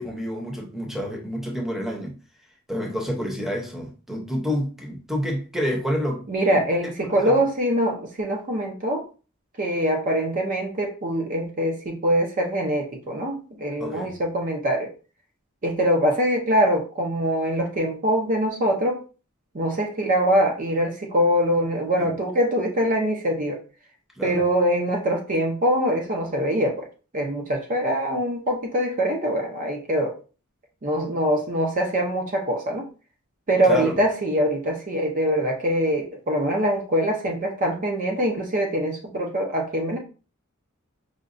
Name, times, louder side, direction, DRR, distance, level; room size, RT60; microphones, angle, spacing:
voice 1, 0.0-2.2 2.7-6.3 6.5-6.6 7.1-7.3 13.8-14.1 22.0-22.1 24.2-24.4 33.7-33.9, equal, ahead, 0.8 m, -28 dB
voice 2, 6.3-9.0 9.6-14.9 15.6-19.0 19.5-23.6 24.2-26.9 27.1-30.2 30.8-32.9 33.5-40.0, equal, 40° right, 0.6 m, -23 dB
4.9 x 2.3 x 2.6 m
head